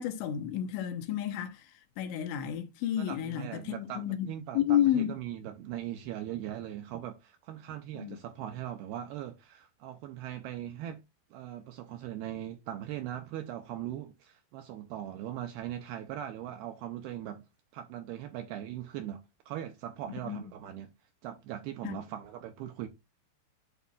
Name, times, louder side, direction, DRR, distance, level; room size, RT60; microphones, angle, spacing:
voice 1, 0.0-1.7 2.0-4.3 4.5-5.1 7.9-8.2 20.1-20.4 21.8-22.0, left 10 dB, 85° left, 3.2 m, -31 dB
voice 2, 3.0-11.0 11.3-17.4 17.7-20.9 21.2-22.9, right 11 dB, 85° right, 2.3 m, -40 dB
10.5 x 4.1 x 2.3 m
omnidirectional pair, 5.1 m